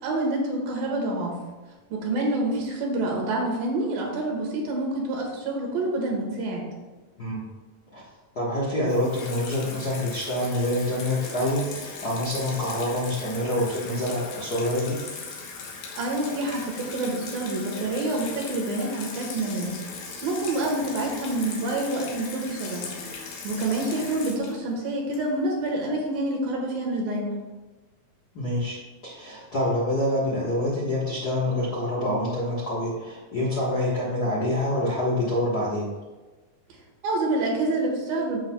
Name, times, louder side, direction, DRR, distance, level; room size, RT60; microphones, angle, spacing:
voice 1, 0.0-1.3 1.9-6.6 15.9-19.8 20.2-22.9 23.4-27.4 37.0-38.4, right 2 dB, 90° right, -1 dB, 3.4 m, -27 dB
voice 2, 7.2-7.5 7.9-8.0 8.3-15.0 28.3-28.8 29.0-35.9, left 1 dB, 55° left, -7 dB, 1.0 m, -26 dB
Water tap faucet / Sink (filling or washing), 8.9-25.6, left 4 dB, 85° left, 3.0 m, -38 dB
14.0 x 5.9 x 2.3 m, 1.2 s
omnidirectional pair, 4.0 m